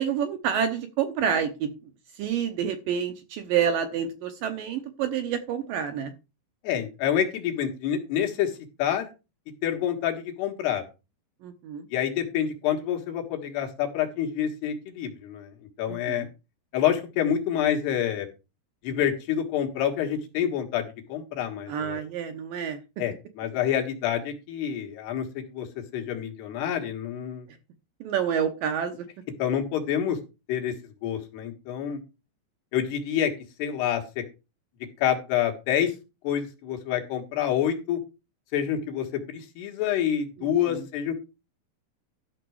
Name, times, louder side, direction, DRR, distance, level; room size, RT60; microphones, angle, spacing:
voice 1, 0.0-1.7 2.2-6.1 11.4-11.9 15.9-16.3 21.7-22.8 28.0-29.1 40.4-40.9, right 8 dB, 70° right, 7 dB, 2.2 m, -28 dB
voice 2, 6.6-9.1 9.6-10.8 11.9-15.5 15.8-16.3 16.7-18.3 18.8-20.8 21.1-22.0 23.0-25.7 25.9-27.5 29.4-30.2 30.5-30.7 31.0-32.0 32.7-33.3 33.6-34.2 35.0-35.9 36.2-38.0 38.5-41.1, left 9 dB, 75° left, 3 dB, 3.6 m, -27 dB
12.5 x 6.0 x 4.6 m, 0.29 s
omnidirectional pair, 4.8 m